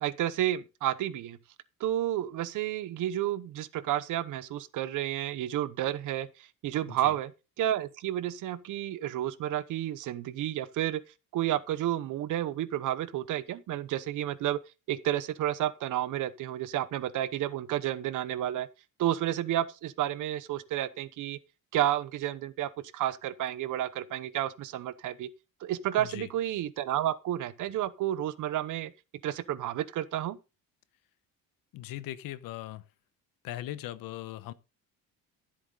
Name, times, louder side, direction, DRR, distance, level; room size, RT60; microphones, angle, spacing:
voice 1, 0.0-1.4 1.8-6.3 6.6-7.3 7.6-11.0 11.3-14.6 14.9-18.7 19.0-21.4 21.7-25.3 25.6-28.9 29.2-30.4, right 12 dB, 60° right, 1.0 m, -31 dB
voice 2, 26.0-26.3 31.7-32.8 33.4-34.5, left 14 dB, 75° left, 1.1 m, -39 dB
14.0 x 8.0 x 3.9 m
cardioid pair, 165°, 35 cm